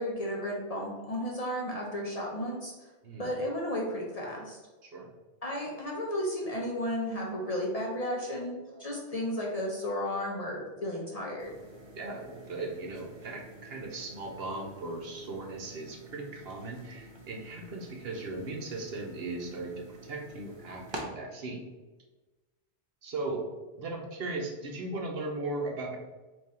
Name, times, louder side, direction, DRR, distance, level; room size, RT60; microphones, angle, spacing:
voice 1, 0.0-2.9 3.2-4.6 5.4-11.5, equal, 40° left, -2 dB, 0.6 m, -33 dB
sound 1, 11.4-21.0, right 1 dB, 30° right, 0.7 m, -49 dB
voice 2, 12.0-21.6 23.0-23.5 23.7-26.0, right 2 dB, 65° right, 1 dB, 0.9 m, -37 dB
3.7 x 2.8 x 4.2 m, 1.2 s
omnidirectional pair, 1.2 m